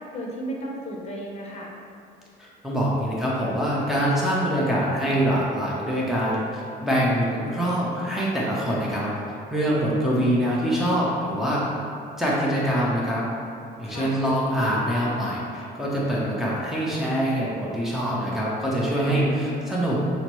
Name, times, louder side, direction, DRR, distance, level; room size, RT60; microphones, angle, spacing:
voice 1, 0.1-1.7 13.8-14.1 19.0-19.4, equal, 40° left, -2 dB, 0.7 m, -34 dB
voice 2, 2.6-9.1 9.5-11.7 12.2-13.2 13.8-20.0, equal, ahead, -7 dB, 0.7 m, -24 dB
5.7 x 2.0 x 3.0 m, 2.5 s
cardioid pair, 110°, 17 cm